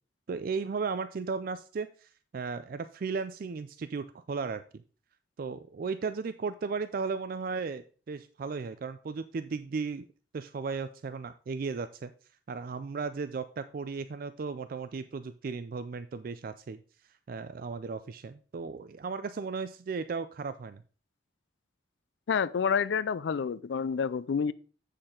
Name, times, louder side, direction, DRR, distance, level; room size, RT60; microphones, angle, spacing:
voice 1, 0.3-4.8 5.4-10.0 10.3-12.1 12.5-16.8 17.3-20.8, right 4 dB, 50° right, 0.4 m, -35 dB
voice 2, 22.3-24.5, left 6 dB, 75° left, 0.4 m, -28 dB
7.7 x 6.6 x 3.7 m
head